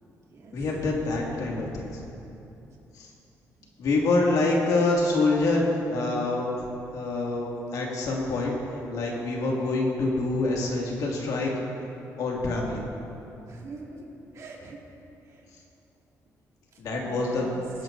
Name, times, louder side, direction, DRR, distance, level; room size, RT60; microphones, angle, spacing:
voice 1, 0.5-1.9 3.0-3.1 3.8-6.5 6.9-8.6 8.9-11.6 12.2-12.8 16.8-17.5, left 2 dB, 80° left, -2 dB, 2.2 m, -26 dB
voice 2, 13.5-14.1 14.3-14.8 15.3-15.4 17.0-17.6, right 3 dB, 55° right, -1 dB, 2.1 m, -44 dB
20.5 x 10.5 x 2.6 m, 2.8 s
cardioid pair, 105°, 6 cm